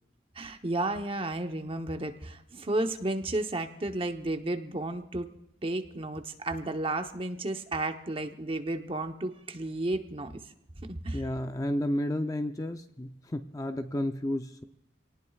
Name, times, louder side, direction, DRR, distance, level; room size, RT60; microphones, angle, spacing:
voice 1, 0.4-5.3 5.6-10.3 10.8-11.2, right 2 dB, 30° right, 6 dB, 0.9 m, -32 dB
voice 2, 11.1-14.6, left 1 dB, 20° left, 7 dB, 0.5 m, -32 dB
27.0 x 19.0 x 2.4 m, 0.85 s
head